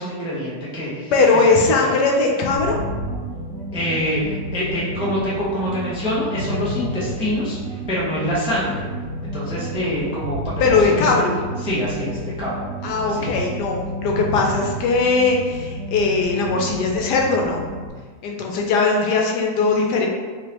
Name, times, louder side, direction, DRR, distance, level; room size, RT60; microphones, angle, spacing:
voice 1, 0.0-1.1 1.5-2.0 3.7-7.6 7.9-8.8 9.3-10.5 10.9-11.3 11.6-12.6 13.1-13.3, equal, 5° right, -7 dB, 0.4 m, -25 dB
voice 2, 1.1-2.8 10.6-11.4 12.8-17.6 18.2-20.1, left 3 dB, 80° left, 1 dB, 1.2 m, -19 dB
sound 1, 2.5-17.9, right 1 dB, 85° right, 1.4 m, -31 dB
3.5 x 3.3 x 3.0 m, 1.5 s
omnidirectional pair, 1.8 m